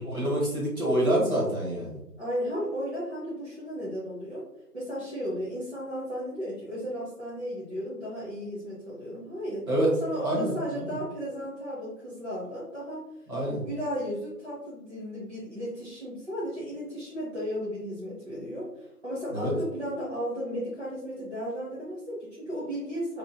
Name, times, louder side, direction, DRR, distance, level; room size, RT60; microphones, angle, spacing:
voice 1, 0.0-2.0 9.7-9.9 10.2-11.0 13.3-13.6 19.3-19.5, right 1 dB, 60° right, -5 dB, 1.5 m, -27 dB
voice 2, 2.2-4.5 4.7-9.7 10.0-13.1 13.6-23.2, equal, 45° right, -9 dB, 0.7 m, -34 dB
2.8 x 2.6 x 2.2 m, 0.84 s
figure-of-eight pair, 165°, 48 cm